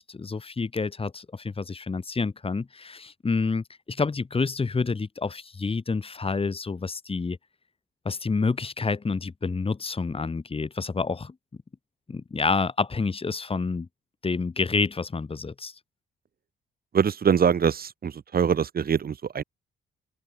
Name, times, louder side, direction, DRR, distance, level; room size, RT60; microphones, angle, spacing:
voice 1, 0.0-7.4 8.0-11.3 12.1-13.9 14.2-15.7, left 4 dB, 30° left, 4.5 m, -28 dB
voice 2, 16.9-19.4, right 7 dB, 50° right, 3.4 m, -23 dB
open air
cardioid pair, 90°, 20 cm